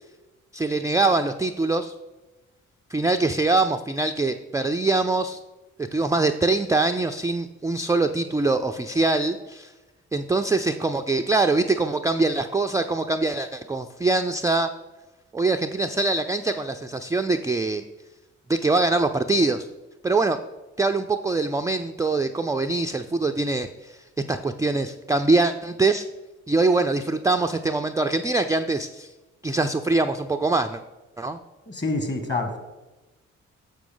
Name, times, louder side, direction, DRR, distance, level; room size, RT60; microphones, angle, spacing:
voice 1, 0.5-1.9 2.9-5.4 5.9-9.7 10.1-14.7 15.3-17.8 18.5-19.7 20.0-20.4 20.8-24.0 24.3-26.1 26.5-29.1 29.4-30.8 31.2-31.4, right 3 dB, 10° right, 6 dB, 0.3 m, -23 dB
voice 2, 31.7-32.6, left 2 dB, 30° left, 5 dB, 1.6 m, -27 dB
6.8 x 6.0 x 3.8 m, 1.1 s
hypercardioid pair, 45°, 34 cm